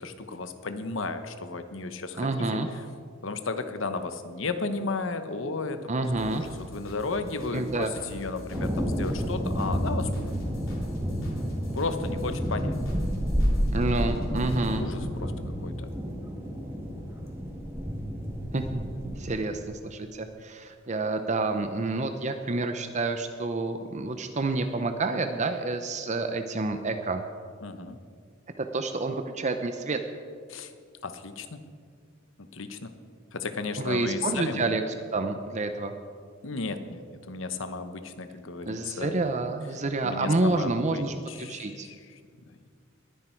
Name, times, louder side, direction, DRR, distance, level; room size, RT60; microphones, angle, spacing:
voice 1, 0.0-2.3 3.2-10.1 11.7-12.8 14.8-15.3 15.6-15.9 27.6-28.0 30.5-30.7 31.0-31.6 32.5-32.9 33.3-34.6 36.4-39.2 40.0-42.0, left 3 dB, 70° left, 9 dB, 1.0 m, -34 dB
voice 2, 2.2-2.7 5.9-6.4 7.5-7.9 13.7-14.9 18.5-18.8 19.2-27.2 28.6-30.0 33.8-35.9 38.7-41.9, right 2 dB, 35° right, 7 dB, 0.7 m, -29 dB
sound 1, 6.0-14.8, equal, 85° left, 3.1 m, -44 dB
sound 2, 8.5-19.4, equal, 15° right, 1.8 m, -30 dB
20.5 x 10.0 x 4.5 m, 2.1 s
head